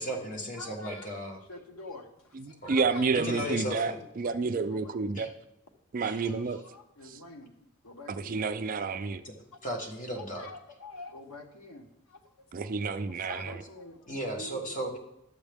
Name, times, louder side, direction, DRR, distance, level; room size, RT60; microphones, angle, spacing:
voice 1, 0.0-1.4 2.6-4.0 5.1-5.3 6.0-6.6 9.2-9.3 9.6-10.5 14.1-15.0, right 1 dB, 35° left, 2 dB, 1.2 m, -36 dB
voice 2, 0.6-1.0 1.5-2.0 2.6-3.8 4.2-5.2 6.2-7.5 7.8-8.4 10.2-11.9 13.3-14.0 14.3-14.8, left 2 dB, 90° left, 3 dB, 1.1 m, -46 dB
voice 3, 2.3-5.3 5.9-6.6 7.1-7.2 8.1-9.2 12.5-13.6, right 4 dB, 40° right, 10 dB, 0.4 m, -30 dB
12.0 x 7.2 x 3.5 m, 0.85 s
head